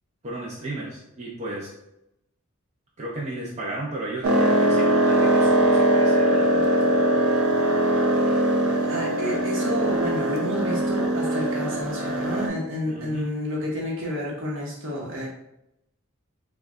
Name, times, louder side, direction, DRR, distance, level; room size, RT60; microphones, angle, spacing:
voice 1, 0.2-1.7 3.0-6.9 12.9-13.4, right 2 dB, 35° right, -5 dB, 0.5 m, -34 dB
sound 1, 4.2-12.5, right 1 dB, 90° right, 0.6 m, -21 dB
voice 2, 8.8-15.3, equal, 65° right, -3 dB, 1.0 m, -30 dB
3.1 x 2.3 x 3.6 m, 0.83 s
head